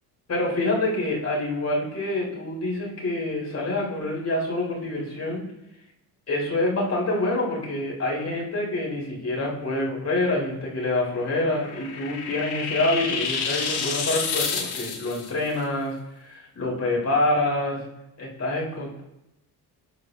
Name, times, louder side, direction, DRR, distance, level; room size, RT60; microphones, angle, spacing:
voice 1, 0.3-5.5 6.3-17.8 18.2-19.0, left 2 dB, 40° left, -3 dB, 4.2 m, -26 dB
sound 1, 11.2-15.3, left 5 dB, 70° left, 2.0 m, -29 dB
20.5 x 10.0 x 2.8 m, 0.89 s
cardioid pair, 100°, 39 cm